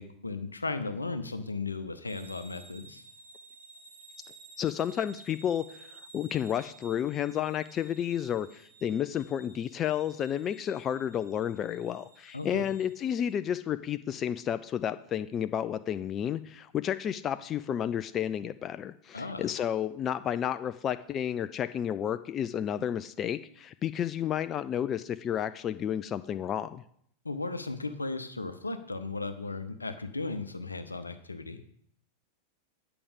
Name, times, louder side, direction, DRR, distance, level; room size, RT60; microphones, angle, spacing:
voice 1, 0.0-3.0 12.3-12.6 19.1-19.5 27.2-31.6, left 3 dB, 80° left, 10 dB, 0.7 m, -36 dB
sound 1, 2.1-13.3, right 3 dB, 70° right, 1.9 m, -54 dB
voice 2, 4.6-26.8, left 9 dB, 30° left, 12 dB, 0.3 m, -31 dB
8.7 x 4.9 x 7.0 m, 0.66 s
figure-of-eight pair, 90°, 0 cm